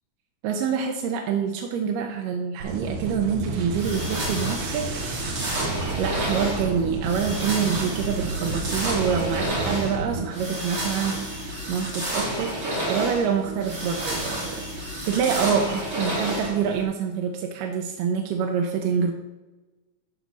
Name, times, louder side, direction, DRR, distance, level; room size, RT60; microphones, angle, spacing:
voice 1, 0.4-14.6 15.1-19.1, right 7 dB, 90° right, 3 dB, 2.4 m, -26 dB
sound 1, 2.6-10.2, right 3 dB, 65° right, 1.5 m, -31 dB
sound 2, 3.7-16.8, right 1 dB, 35° right, 2.2 m, -30 dB
11.5 x 4.1 x 6.5 m, 1.1 s
omnidirectional pair, 3.7 m